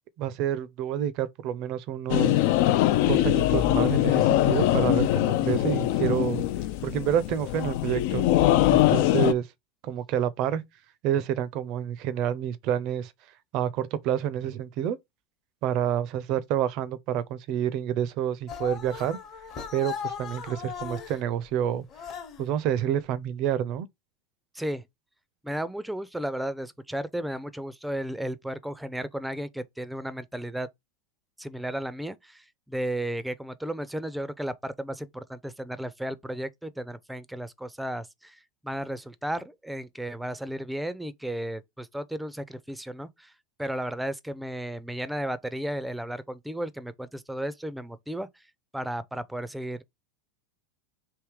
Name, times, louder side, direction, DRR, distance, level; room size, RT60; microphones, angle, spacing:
voice 1, 0.2-2.4 3.1-6.4 6.8-8.3 8.7-9.5 9.8-10.6 11.0-13.1 13.5-15.0 15.6-19.2 19.7-21.8 22.4-23.9, right 10 dB, 50° right, 0.5 m, -28 dB
sound 1, 2.1-9.3, left 14 dB, 60° left, 0.3 m, -22 dB
sound 2, 18.5-21.2 21.9-22.5, left 7 dB, 45° left, 1.0 m, -37 dB
voice 2, 25.4-30.7 31.4-43.3 43.6-48.3 48.7-49.8, right 1 dB, 5° right, 0.5 m, -34 dB
3.5 x 2.8 x 4.7 m
hypercardioid pair, 90°, 0 cm